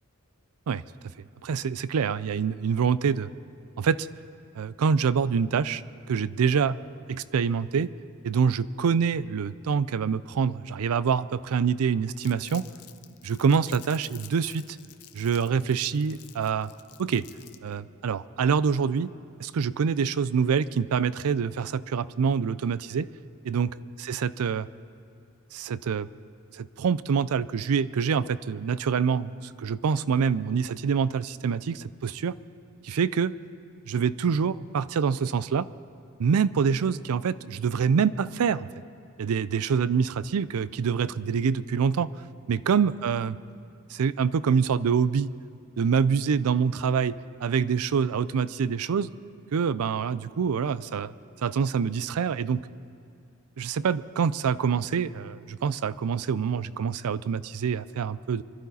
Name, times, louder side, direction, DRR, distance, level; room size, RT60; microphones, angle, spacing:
voice 1, 1.4-3.3 3.8-4.1 4.6-5.8 6.1-6.8 7.1-7.9 8.2-12.6 13.2-14.6 15.1-16.7 17.0-17.2 17.6-19.1 19.4-23.1 23.4-23.7 24.0-24.7 25.5-26.1 26.5-32.3 32.8-33.3 33.9-35.7 36.2-38.7 39.2-42.1 42.5-43.4 43.9-45.3 45.8-47.1 47.4-49.1 49.5-51.1 51.4-52.6 53.6-58.4, right 6 dB, 75° right, 17 dB, 0.4 m, -25 dB
Crumpling crinkling, 12.2-17.7, left 14 dB, 85° left, 0.7 m, -50 dB
24.5 x 12.0 x 4.1 m, 2.5 s
head